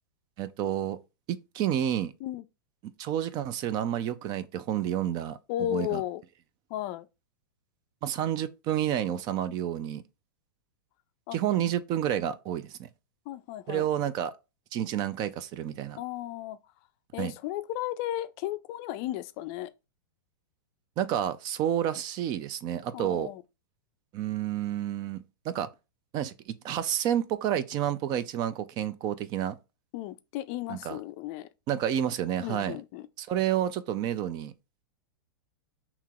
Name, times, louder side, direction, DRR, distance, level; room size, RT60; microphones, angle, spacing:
voice 1, 0.4-1.0 1.3-2.1 3.0-6.0 8.0-10.0 11.3-12.9 13.7-14.3 14.7-16.0 17.2-17.3 21.0-23.3 24.1-25.7 26.1-29.6 30.7-31.0 31.7-32.8 33.2-34.5, right 10 dB, 35° right, 0.4 m, -30 dB
voice 2, 5.5-6.2 6.7-7.1 9.5-9.6 11.3-11.4 13.3-13.9 16.0-16.6 17.1-19.7 22.9-23.4 29.9-31.5 32.4-33.1, left 13 dB, 45° left, 0.4 m, -34 dB
5.6 x 2.9 x 2.4 m
hypercardioid pair, 120°, 12 cm